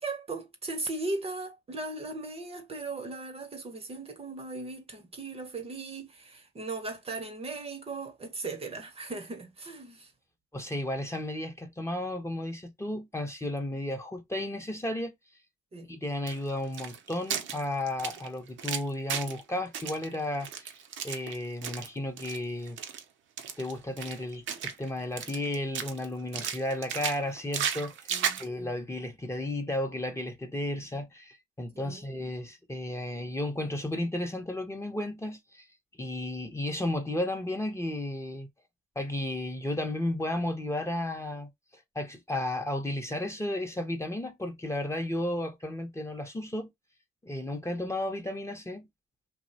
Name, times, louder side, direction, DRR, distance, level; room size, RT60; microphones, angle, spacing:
voice 1, 0.0-10.1 15.7-16.0 28.1-28.7 31.8-32.1, right 3 dB, 30° right, 0.6 m, -38 dB
voice 2, 10.5-15.1 15.9-20.7 21.0-22.8 23.6-28.1 28.4-35.7 36.0-38.5 39.0-46.7 47.2-48.8, left 1 dB, 15° left, 0.6 m, -33 dB
sound 1, 16.3-19.4 19.7-21.9 22.2-22.4 22.7-23.0 23.4-24.9 25.2-26.0 26.3-28.5, right 8 dB, 75° right, 0.5 m, -35 dB
2.5 x 2.0 x 2.6 m
cardioid pair, 90°, 20 cm